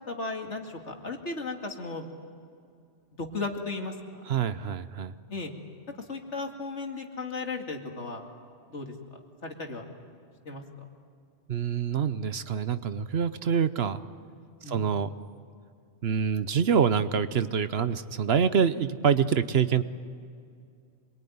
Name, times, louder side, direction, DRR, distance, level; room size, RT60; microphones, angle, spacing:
voice 1, 0.1-2.1 3.2-4.2 5.3-5.5 6.1-8.2 8.7-8.9 9.4-9.8 10.5-10.6 14.6-14.9, left 3 dB, 75° left, 2 dB, 2.7 m, -35 dB
voice 2, 4.3-5.1 11.5-14.0 14.7-15.1 16.0-19.8, right 7 dB, 60° right, 13 dB, 1.0 m, -26 dB
26.5 x 22.0 x 9.5 m, 2.3 s
omnidirectional pair, 1.2 m